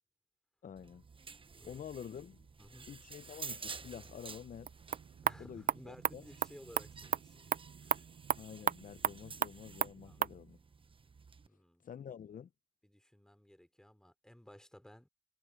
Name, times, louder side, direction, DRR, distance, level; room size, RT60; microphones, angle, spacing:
voice 1, 0.6-1.0 1.6-2.5 2.9-4.7 5.4-6.2 8.4-10.6 11.8-12.5, left 8 dB, 45° left, 0.8 m, -48 dB
sound 1, 0.8-11.5, right 4 dB, 25° right, 1.0 m, -51 dB
voice 2, 2.6-2.9 5.2-7.5 7.8-8.1 10.0-10.2 11.4-11.8 12.8-15.1, equal, 5° left, 4.1 m, -57 dB
sound 2, 4.5-10.4, right 9 dB, 45° right, 0.7 m, -36 dB
cardioid pair, 90°, 20 cm